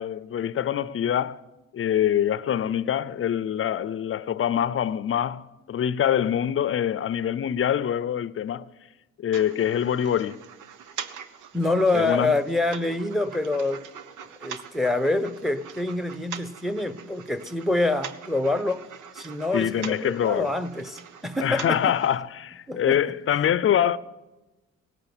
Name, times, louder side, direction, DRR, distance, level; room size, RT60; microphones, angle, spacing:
voice 1, 0.0-1.4 1.7-8.7 9.2-10.4 11.9-12.3 19.5-20.5 21.4-24.0, left 9 dB, 45° left, 0.6 m, -25 dB
sound 1, 9.3-22.2, right 8 dB, 85° right, 1.0 m, -43 dB
voice 2, 11.5-13.8 14.4-18.9 19.1-21.8 22.7-23.0, left 2 dB, ahead, 0.9 m, -26 dB
18.0 x 9.0 x 7.9 m
cardioid pair, 90°, 30 cm